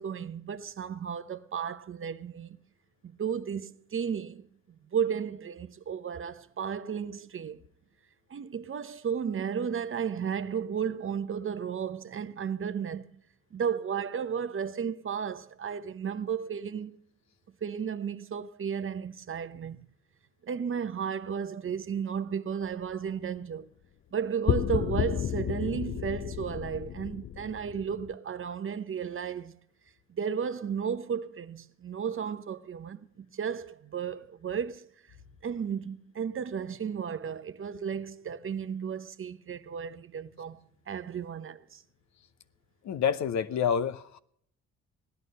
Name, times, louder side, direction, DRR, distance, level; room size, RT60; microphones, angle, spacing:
voice 1, 0.0-2.6 3.0-4.5 4.9-7.6 8.3-13.2 13.5-17.0 17.6-19.8 20.5-23.7 24.1-29.6 30.1-34.9 35.4-41.8, right 7 dB, 35° right, 0.9 m, -34 dB
sound 1, 24.5-28.1, left 9 dB, 35° left, 0.5 m, -32 dB
voice 2, 42.8-44.2, left 7 dB, 50° left, 0.9 m, -28 dB
16.5 x 11.0 x 5.4 m
hypercardioid pair, 55°, 35 cm